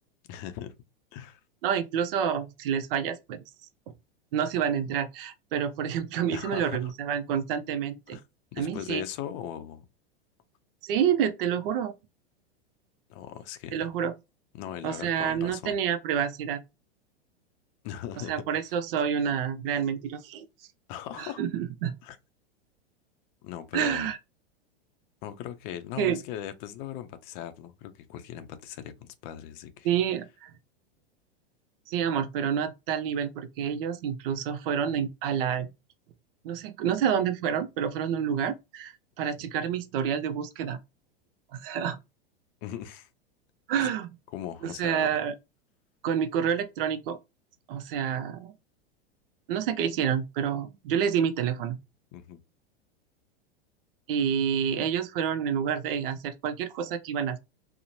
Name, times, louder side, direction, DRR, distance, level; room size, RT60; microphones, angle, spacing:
voice 1, 0.3-0.7 1.1-1.4 6.3-6.9 8.1-8.2 8.5-9.9 13.1-13.9 14.5-15.8 17.8-18.3 20.9-21.4 22.0-22.2 23.4-24.1 25.2-29.9 42.6-43.1 43.8-43.9 44.3-45.1 52.1-52.4, left 11 dB, 45° left, 0.5 m, -39 dB
voice 2, 1.6-3.4 4.3-8.2 8.6-9.0 10.8-11.9 13.7-14.1 14.8-16.6 18.3-20.5 21.2-21.9 23.7-24.2 26.0-26.2 29.8-30.5 31.9-35.7 36.4-40.8 41.5-42.0 43.7-44.1 44.6-45.3 46.0-47.2 47.7-48.5 49.5-51.8 54.1-57.4, right 8 dB, 60° right, 0.5 m, -28 dB
2.8 x 2.1 x 2.6 m
hypercardioid pair, 110°, 31 cm